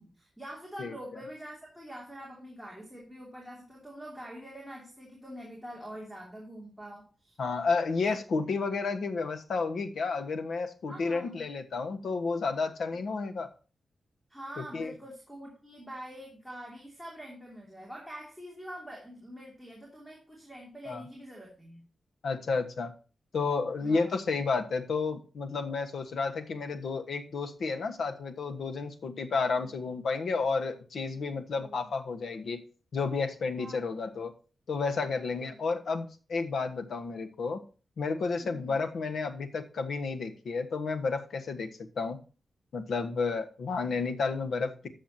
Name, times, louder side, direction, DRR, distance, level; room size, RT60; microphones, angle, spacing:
voice 1, 0.0-7.4 10.9-11.5 12.9-13.0 14.3-21.8 23.8-24.2 29.6-29.7 31.6-31.8 33.6-33.9 35.1-35.6 38.4-38.8, equal, ahead, -2 dB, 2.9 m, -45 dB
voice 2, 7.4-13.5 14.6-14.9 20.9-21.0 22.2-22.9 23.3-32.6 32.9-34.3 34.7-37.6 38.0-42.2 42.7-44.9, left 4 dB, 75° left, 7 dB, 1.3 m, -31 dB
13.5 x 7.2 x 2.8 m, 0.36 s
wide cardioid pair, 140°, 0 cm